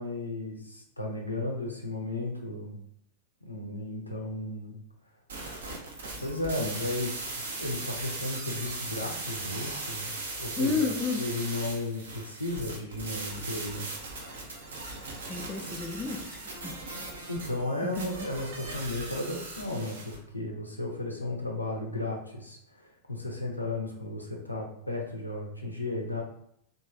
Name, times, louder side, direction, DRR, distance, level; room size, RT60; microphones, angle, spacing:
voice 1, 0.0-2.8 3.4-4.8 6.2-10.1 10.4-13.9 17.3-26.2, left 2 dB, 85° left, 0 dB, 0.5 m, -34 dB
sound 1, 5.3-20.2, right 2 dB, 65° right, 0.7 m, -38 dB
voice 2, 10.6-11.2 15.3-16.7 17.8-18.3, left 4 dB, 15° left, 3 dB, 0.4 m, -31 dB
3.0 x 2.4 x 2.4 m, 0.71 s
figure-of-eight pair, 90°, 0 cm